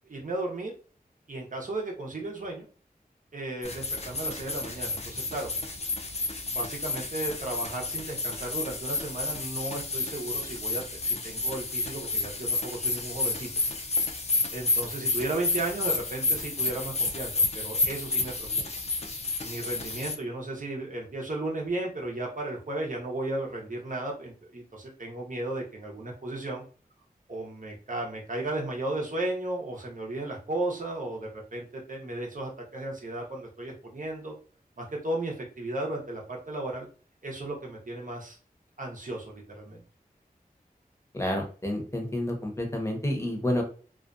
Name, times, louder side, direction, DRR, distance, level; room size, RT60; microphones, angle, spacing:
voice 1, 0.0-0.7 1.3-2.7 3.3-5.5 6.5-13.5 14.5-18.6 19.4-26.6 27.3-34.3 34.8-36.9 37.2-38.4 38.8-39.8, right 2 dB, 55° right, -1 dB, 0.8 m, -35 dB
sound 1, 3.6-20.2, left 3 dB, 45° left, 0.4 m, -30 dB
voice 2, 41.1-43.6, left 1 dB, 20° left, 2 dB, 0.8 m, -29 dB
2.4 x 2.2 x 2.5 m, 0.38 s
wide cardioid pair, 55°, 16 cm